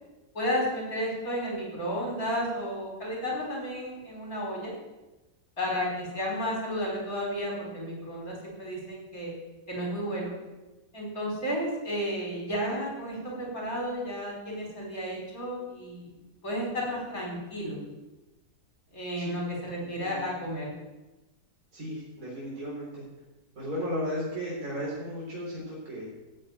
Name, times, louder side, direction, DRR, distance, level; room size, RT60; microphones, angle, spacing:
voice 1, 0.3-4.7 5.6-9.3 9.7-10.3 10.9-16.1 16.4-17.8 18.9-20.8, equal, 60° left, -3 dB, 5.2 m, -32 dB
voice 2, 19.8-20.3 21.7-23.0 23.6-26.1, equal, 65° right, -6 dB, 4.0 m, -35 dB
13.5 x 6.4 x 9.1 m, 1.1 s
omnidirectional pair, 1.7 m